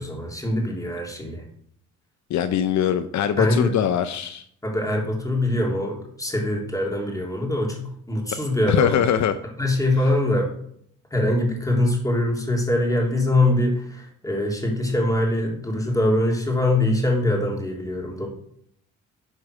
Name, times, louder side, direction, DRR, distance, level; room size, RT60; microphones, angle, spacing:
voice 1, 0.0-1.4 3.4-3.7 4.6-9.1 9.6-10.5 11.1-18.3, left 1 dB, 10° left, -1 dB, 3.2 m, -23 dB
voice 2, 2.3-4.4 8.7-9.4, left 9 dB, 65° left, 10 dB, 0.7 m, -22 dB
11.0 x 4.7 x 6.4 m, 0.67 s
cardioid pair, 90°, 30 cm